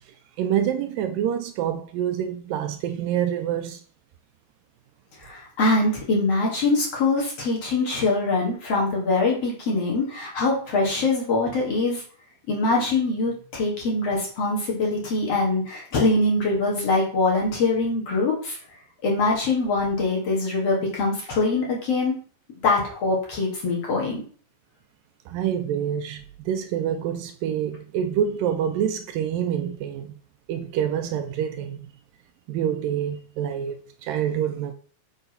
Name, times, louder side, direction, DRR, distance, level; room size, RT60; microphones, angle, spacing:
voice 1, 0.4-3.8 25.3-30.2 30.5-31.8 32.5-33.8 34.0-34.7, right 9 dB, 80° right, 2.2 m, -26 dB
voice 2, 5.2-12.0 12.5-18.6 19.0-22.1 22.6-24.2, left 3 dB, 50° left, 2.6 m, -23 dB
7.9 x 3.9 x 5.6 m
omnidirectional pair, 4.2 m